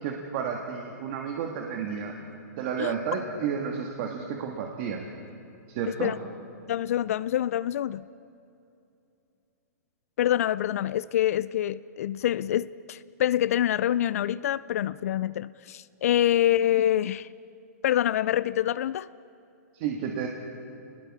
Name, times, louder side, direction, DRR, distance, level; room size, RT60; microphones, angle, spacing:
voice 1, 0.0-2.1 2.6-5.1 5.7-6.1 19.7-20.3, right 7 dB, 40° right, 2 dB, 1.7 m, -31 dB
voice 2, 6.7-8.0 10.2-17.3 17.8-19.1, left 12 dB, 60° left, 18 dB, 0.4 m, -26 dB
27.5 x 20.0 x 4.9 m, 2.7 s
hypercardioid pair, 150°, 9 cm